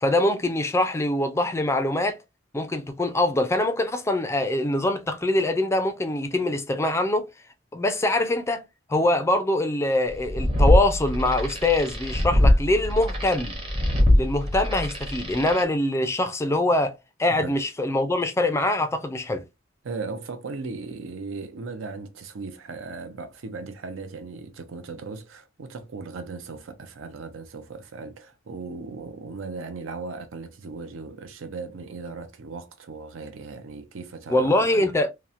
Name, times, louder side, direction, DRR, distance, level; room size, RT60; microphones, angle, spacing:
voice 1, 0.0-2.2 2.5-7.3 7.7-8.6 8.9-13.5 14.2-19.4 34.3-35.1, left 1 dB, 15° left, 0.3 m, -23 dB
sound 1, 10.1-15.6, left 1 dB, 25° right, 0.7 m, -22 dB
voice 2, 19.8-34.9, right 4 dB, 85° right, 0.5 m, -37 dB
2.8 x 2.0 x 2.4 m
head